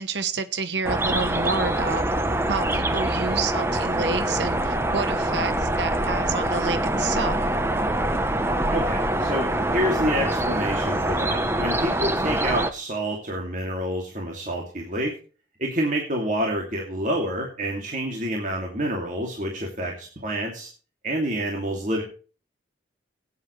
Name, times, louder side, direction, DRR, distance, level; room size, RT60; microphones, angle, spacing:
voice 1, 0.0-2.0 2.5-7.5, right 4 dB, 70° right, 11 dB, 0.9 m, -29 dB
sound 1, 0.8-12.7, right 1 dB, 15° right, 0.9 m, -24 dB
voice 2, 8.7-15.2 15.6-20.7 21.0-22.0, right 1 dB, 45° right, 0 dB, 2.6 m, -28 dB
17.0 x 9.5 x 3.2 m, 0.37 s
head